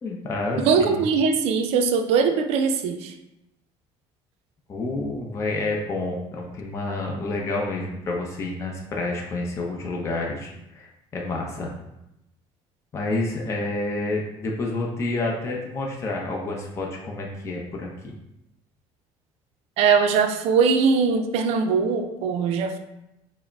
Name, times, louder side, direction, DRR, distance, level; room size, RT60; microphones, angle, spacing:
voice 1, 0.0-1.1 4.7-10.9 11.1-11.7 12.9-18.1, left 2 dB, 25° left, -1 dB, 0.5 m, -29 dB
voice 2, 0.6-3.1 19.8-22.8, right 5 dB, 65° right, 7 dB, 0.4 m, -21 dB
4.7 x 2.0 x 3.4 m, 0.88 s
cardioid pair, 145°, 11 cm